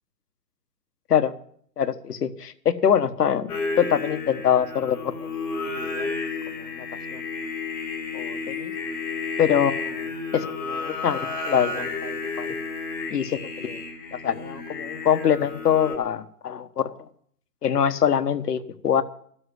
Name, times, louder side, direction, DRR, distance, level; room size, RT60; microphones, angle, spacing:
voice 1, 1.8-3.5 3.8-5.3 5.8-6.2 6.6-6.9 7.1-7.2 8.1-8.7 9.4-12.5 13.1-13.8 14.1-16.9 17.6-19.0, left 8 dB, 70° left, 11 dB, 1.3 m, -24 dB
Singing, 3.5-15.9, left 4 dB, 5° left, 0.6 m, -32 dB
12.5 x 7.8 x 9.8 m, 0.62 s
hypercardioid pair, 150°, 49 cm